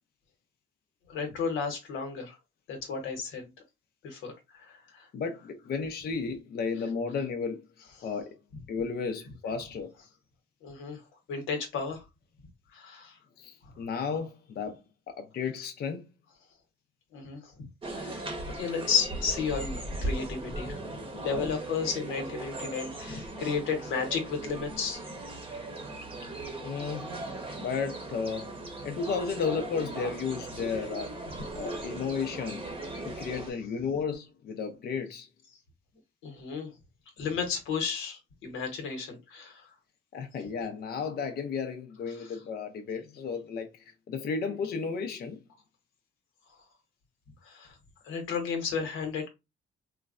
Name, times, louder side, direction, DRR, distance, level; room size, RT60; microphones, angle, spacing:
voice 1, 1.1-2.4 2.7-3.5 4.0-5.1 8.0-8.1 10.6-12.0 12.7-13.2 17.1-17.5 17.9-20.8 21.2-25.0 25.5-25.6 26.2-26.3 33.1-33.3 36.2-36.7 37.2-39.7 42.1-42.4 47.4-47.8 48.0-49.3, left 5 dB, 90° left, 1.0 m, -33 dB
voice 2, 5.1-7.6 8.0-8.4 8.7-9.9 13.4-14.8 15.1-16.1 21.1-21.5 26.6-27.1 27.6-28.5 28.8-31.1 31.5-32.7 33.0-35.3 40.1-45.4, left 5 dB, 50° left, 0.5 m, -33 dB
sound 1, 17.8-33.5, right 2 dB, 25° right, 0.8 m, -38 dB
3.1 x 2.1 x 2.4 m
cardioid pair, 90°, 20 cm